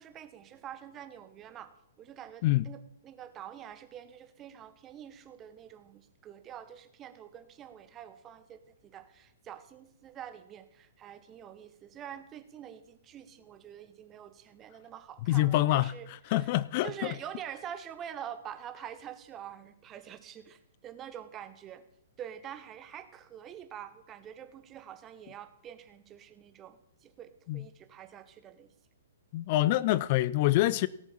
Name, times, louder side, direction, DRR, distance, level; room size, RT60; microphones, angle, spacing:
voice 1, 0.0-1.7 2.0-16.5 16.8-21.8 22.2-28.7, right 9 dB, 25° right, 1.0 m, -46 dB
voice 2, 15.3-15.9 16.3-17.1 27.5-27.6 29.3-30.9, left 16 dB, 40° left, 0.3 m, -26 dB
17.5 x 7.0 x 4.5 m
figure-of-eight pair, 115°, 0 cm